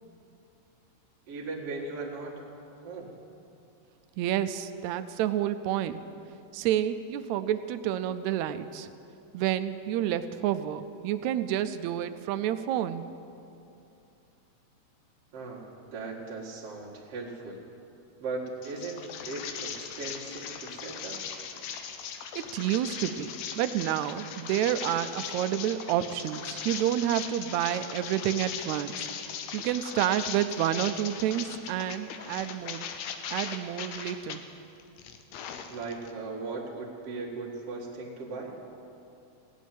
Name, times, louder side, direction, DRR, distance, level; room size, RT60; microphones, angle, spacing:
voice 1, 1.3-2.3 2.8-3.1 15.3-17.6 18.2-21.2 35.7-38.6, right 3 dB, 55° right, -4 dB, 2.7 m, -38 dB
voice 2, 4.2-6.0 6.5-8.9 9.3-13.0 22.3-29.1 29.5-32.8 33.3-34.4, right 11 dB, 80° right, 11 dB, 1.8 m, -29 dB
sound 1, 18.6-34.4 34.8-36.1, left 7 dB, 75° left, 1.9 m, -39 dB
17.0 x 6.2 x 9.2 m, 2.7 s
omnidirectional pair, 3.4 m